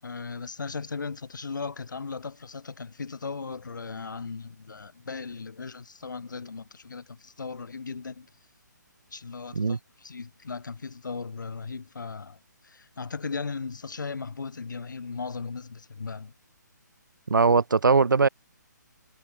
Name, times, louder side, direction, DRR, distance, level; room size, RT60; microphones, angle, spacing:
voice 1, 0.0-8.3 9.1-12.4 12.6-16.3, left 4 dB, 80° left, 7.6 m, -37 dB
voice 2, 17.3-18.3, right 4 dB, 90° right, 5.7 m, -20 dB
hypercardioid pair, 175°, 10 cm